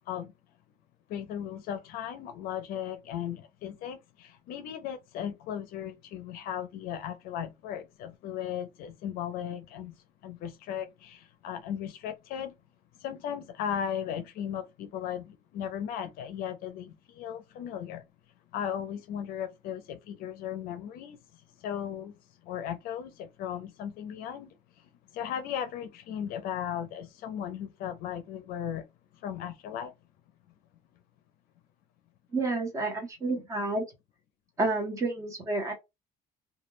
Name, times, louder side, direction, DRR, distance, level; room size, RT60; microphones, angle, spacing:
voice 1, 1.1-10.0 10.2-12.5 13.0-18.0 18.5-21.2 21.6-22.1 22.4-24.5 25.1-28.8 29.2-29.9, left 9 dB, 65° left, 0.5 m, -36 dB
voice 2, 32.3-33.8 34.6-35.7, right 2 dB, 20° right, 0.7 m, -30 dB
2.2 x 2.1 x 3.0 m
cardioid pair, 175°, 16 cm